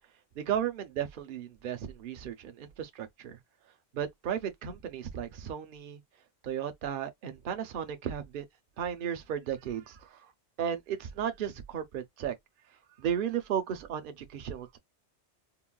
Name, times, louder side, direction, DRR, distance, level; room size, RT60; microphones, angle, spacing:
voice 1, 0.4-3.4 3.9-6.0 6.4-8.5 8.8-10.3 10.6-12.3 13.0-14.8, right 9 dB, 55° right, 0.7 m, -34 dB
3.8 x 2.1 x 2.2 m
omnidirectional pair, 1.2 m